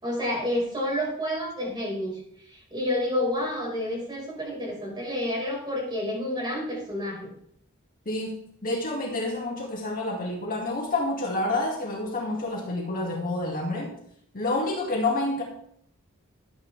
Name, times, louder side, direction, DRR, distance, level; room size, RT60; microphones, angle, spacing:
voice 1, 0.0-2.1 2.5-7.3, left 1 dB, 20° right, -3 dB, 5.3 m, -29 dB
voice 2, 8.1-14.0 14.3-15.4, left 2 dB, 40° left, -1 dB, 2.3 m, -28 dB
12.5 x 9.7 x 3.5 m, 0.65 s
head